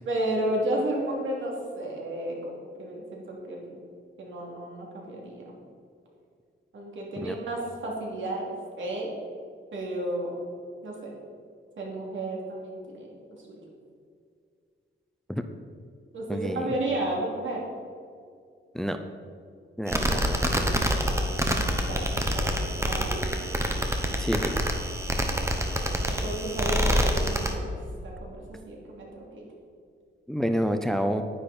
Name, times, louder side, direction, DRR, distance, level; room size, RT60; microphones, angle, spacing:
voice 1, 0.0-3.8 4.2-5.4 6.7-8.5 8.8-9.1 9.7-10.3 10.8-11.1 11.8-13.6 16.1-17.6 20.1-20.6 21.0-21.4 21.9-23.2 25.3-27.8 28.0-29.4, right 1 dB, 70° right, -2 dB, 3.0 m, -33 dB
voice 2, 16.3-16.8 18.7-19.0 19.8-20.4 24.2-24.6 30.3-31.2, equal, ahead, 7 dB, 0.5 m, -28 dB
sound 1, 19.9-27.5, equal, 15° right, 1.2 m, -26 dB
10.5 x 10.0 x 4.3 m, 2.3 s
cardioid pair, 105°, 20 cm